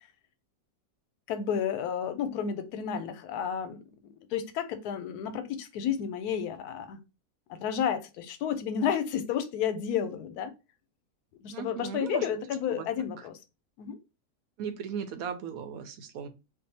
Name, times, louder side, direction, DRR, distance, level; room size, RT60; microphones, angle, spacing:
voice 1, 1.3-3.8 4.3-7.0 7.6-10.5 11.4-13.4 13.8-14.0, left 8 dB, 90° left, 1.1 m, -31 dB
voice 2, 11.5-12.3 12.7-12.9 13.2-13.3 14.6-16.3, right 7 dB, 75° right, 1.0 m, -37 dB
2.7 x 2.4 x 3.9 m
omnidirectional pair, 1.6 m